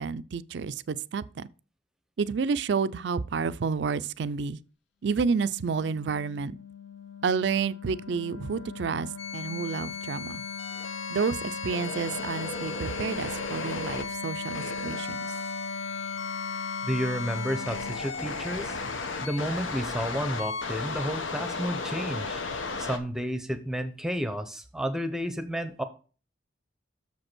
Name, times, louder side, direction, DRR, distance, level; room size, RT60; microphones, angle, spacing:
voice 1, 0.0-1.5 2.2-4.6 5.0-6.6 7.2-10.4 11.1-15.3, right 5 dB, 65° right, 0.4 m, -30 dB
Wind instrument woodwind instrument, 5.1-18.1, left 4 dB, 70° left, 0.6 m, -39 dB
sound 1, 9.2-23.0, left 4 dB, 85° left, 1.0 m, -35 dB
voice 2, 16.8-18.8 19.2-22.4 22.8-25.8, equal, 5° right, 0.7 m, -31 dB
6.8 x 5.2 x 6.0 m
head